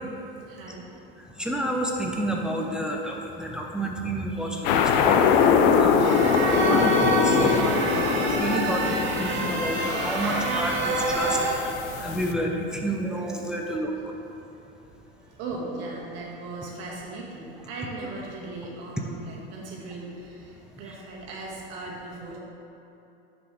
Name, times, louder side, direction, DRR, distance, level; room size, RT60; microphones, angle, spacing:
voice 1, 0.5-0.9 6.0-6.1 8.6-8.9 9.2-9.4 13.5-13.6 14.5-14.6 15.2-22.4, right 2 dB, 55° right, -3 dB, 1.5 m, -38 dB
voice 2, 1.2-6.0 6.4-13.9, right 1 dB, 5° right, 0 dB, 0.5 m, -30 dB
sound 1, 4.6-12.3, left 6 dB, 55° left, 0.5 m, -23 dB
sound 2, 6.0-11.5, right 2 dB, 40° right, 0.9 m, -27 dB
6.7 x 5.1 x 3.1 m, 2.9 s
hypercardioid pair, 90°, 30 cm